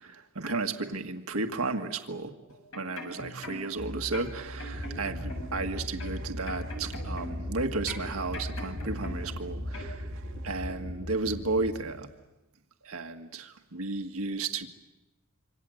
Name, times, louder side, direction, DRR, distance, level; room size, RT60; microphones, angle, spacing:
voice 1, 0.0-2.3 2.8-10.1 10.4-12.1 12.8-14.7, right 3 dB, 85° right, 5 dB, 1.8 m, -33 dB
sound 1, 2.5-3.8 4.1-5.7 6.0-7.5 7.9-9.4 9.7-9.9, left 1 dB, 75° left, 7.6 m, -42 dB
sound 2, 3.8-10.7, right 1 dB, 65° right, 2.3 m, -40 dB
sound 3, 4.7-11.8, left 1 dB, 50° left, 5.2 m, -40 dB
26.5 x 26.0 x 7.9 m, 1.0 s
head